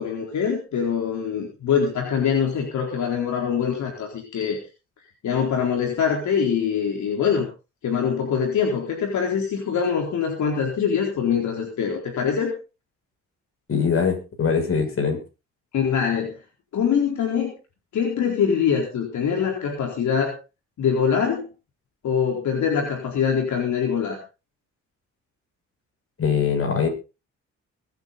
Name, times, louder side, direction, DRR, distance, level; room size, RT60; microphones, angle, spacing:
voice 1, 0.0-4.6 5.2-7.5 7.8-12.5 15.7-16.4 16.7-17.5 17.9-20.3 20.8-21.5 22.0-24.2, left 7 dB, 70° left, 1 dB, 4.2 m, -23 dB
voice 2, 13.7-15.2 26.2-26.9, left 6 dB, 45° left, 3 dB, 6.7 m, -22 dB
23.0 x 9.4 x 4.1 m, 0.32 s
cardioid pair, 90°, 30 cm